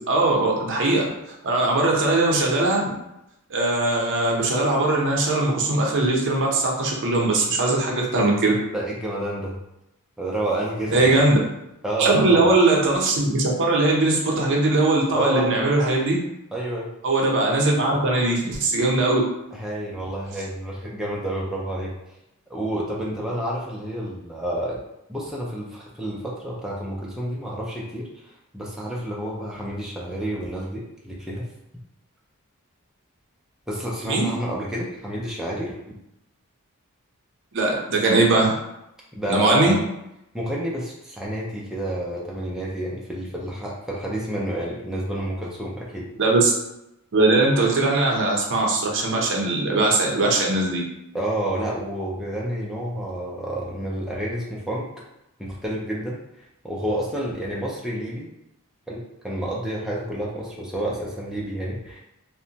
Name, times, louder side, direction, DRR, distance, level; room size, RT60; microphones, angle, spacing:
voice 1, 0.1-1.1 1.4-2.8 3.5-8.6 10.9-11.4 12.0-16.2 17.0-19.2 34.0-34.3 37.5-38.5 39.3-39.7 46.2-46.5 47.1-50.8, right 2 dB, 60° right, -1 dB, 0.6 m, -20 dB
voice 2, 8.7-9.6 10.2-11.2 11.8-12.5 15.1-15.5 16.5-16.9 19.5-21.9 22.5-24.8 25.1-28.1 28.5-31.5 33.7-35.7 39.1-39.8 40.3-46.0 51.1-54.9 55.4-56.2 56.6-58.3 58.9-62.0, right 1 dB, ahead, -5 dB, 0.3 m, -29 dB
2.8 x 2.1 x 2.7 m, 0.86 s
head